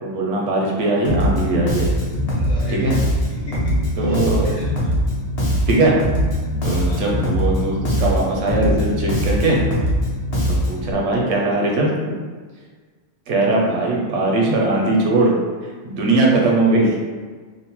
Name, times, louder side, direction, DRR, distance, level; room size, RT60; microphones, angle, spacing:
voice 1, 0.0-1.9 2.7-2.9 4.0-4.5 5.7-5.9 6.6-9.6 10.5-12.2 13.3-15.3 15.8-17.0, right 2 dB, 75° right, -2 dB, 0.9 m, -20 dB
Bass guitar, 1.0-10.9, equal, 50° left, 0.4 m, -21 dB
voice 2, 2.3-3.0 3.3-4.9 6.9-7.1 10.5-10.7, equal, 70° left, -5 dB, 1.1 m, -34 dB
2.8 x 2.0 x 2.9 m, 1.5 s
omnidirectional pair, 1.3 m